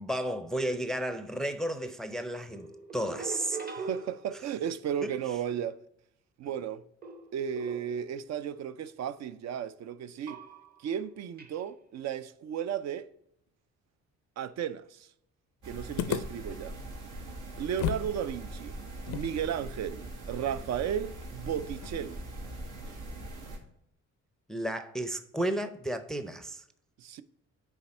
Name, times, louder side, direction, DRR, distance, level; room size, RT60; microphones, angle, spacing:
voice 1, 0.0-3.9 24.5-26.6, right 1 dB, ahead, 0.5 m, -33 dB
sound 1, 2.5-4.7 7.0-8.3 10.3-10.9 11.4-11.6, right 4 dB, 30° right, 0.9 m, -42 dB
voice 2, 3.8-5.8 6.4-6.8 7.3-10.4 10.8-13.1 14.4-15.1 15.7-16.8 17.6-18.8 19.1-22.2 27.0-27.2, right 9 dB, 60° right, 0.5 m, -34 dB
sound 2, 15.6-23.6, right 1 dB, 85° right, 1.6 m, -42 dB
sound 3, 16.0-18.1 18.4-18.5 19.0-22.2, left 11 dB, 80° left, 0.5 m, -38 dB
9.0 x 3.4 x 4.2 m
cardioid pair, 90°, 30 cm